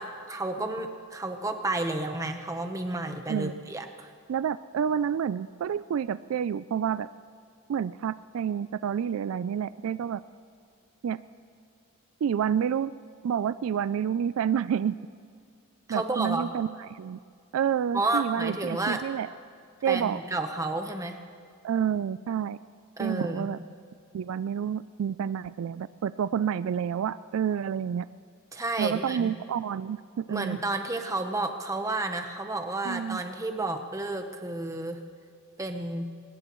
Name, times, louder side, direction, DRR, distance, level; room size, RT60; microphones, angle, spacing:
voice 1, 0.0-4.1 15.9-16.5 17.9-19.0 19.9-21.2 23.0-23.5 28.5-29.3 30.3-35.0 35.6-36.1, right 2 dB, 15° right, 6 dB, 1.0 m, -31 dB
voice 2, 4.3-7.1 7.7-10.2 11.0-11.2 12.2-12.9 13.2-15.0 15.9-17.2 17.5-19.3 19.8-20.2 21.6-22.6 23.0-23.6 24.1-28.1 28.8-30.6 32.8-33.2, right 8 dB, 65° right, 15 dB, 0.3 m, -29 dB
23.0 x 19.5 x 3.1 m, 2.2 s
head